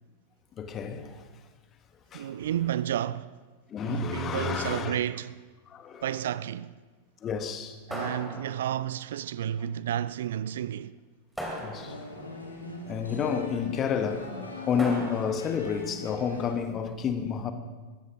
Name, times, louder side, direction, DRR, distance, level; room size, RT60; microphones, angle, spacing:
voice 1, 0.6-1.2 2.1-2.3 3.7-4.9 5.7-6.0 7.2-7.8 11.6-11.9 12.9-17.5, left 7 dB, 30° left, 1.3 m, -30 dB
voice 2, 2.1-3.3 3.8-5.4 6.0-6.8 7.9-11.0 14.7-14.8, right 11 dB, 60° right, 0.3 m, -31 dB
sound 1, 7.9-9.0 11.4-12.3 14.8-15.7, equal, ahead, 3.0 m, -38 dB
sound 2, 11.7-16.5, left 3 dB, 80° left, 2.1 m, -41 dB
21.0 x 15.5 x 3.2 m
figure-of-eight pair, 90°, 0 cm